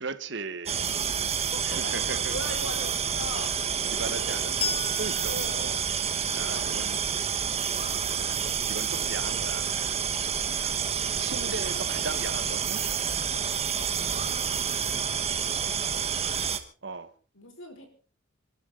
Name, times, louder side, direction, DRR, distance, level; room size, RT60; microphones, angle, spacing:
voice 1, 0.0-1.0 1.6-2.3 3.9-4.5 5.0-5.8 6.3-7.0 8.7-9.7 10.6-10.7 11.2-12.8 16.8-17.1, right 4 dB, 60° right, 1.3 m, -37 dB
sound 1, 0.7-16.6, right 7 dB, 30° right, 1.3 m, -29 dB
voice 2, 1.0-3.5 3.9-4.5 5.3-5.7 6.3-6.7 15.2-16.4 17.3-17.9, left 1 dB, 75° left, 4.8 m, -41 dB
Bell, 4.6-7.7, left 5 dB, 30° left, 1.2 m, -38 dB
27.0 x 12.5 x 3.9 m
head